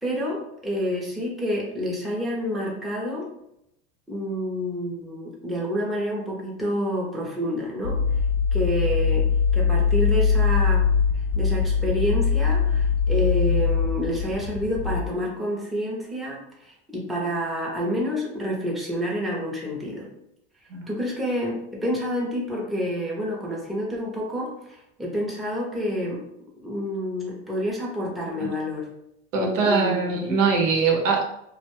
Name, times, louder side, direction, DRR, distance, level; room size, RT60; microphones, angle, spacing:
voice 1, 0.0-3.3 4.1-8.0 8.5-9.3 9.5-10.9 11.4-20.1 20.9-26.2 26.6-28.9 29.3-30.1, equal, ahead, -4 dB, 0.6 m, -28 dB
sound 1, 7.8-15.0, left 6 dB, 75° left, 0.5 m, -22 dB
voice 2, 29.3-31.3, right 4 dB, 90° right, 0 dB, 0.9 m, -22 dB
2.3 x 2.2 x 3.0 m, 0.80 s
supercardioid pair, 110°, 38 cm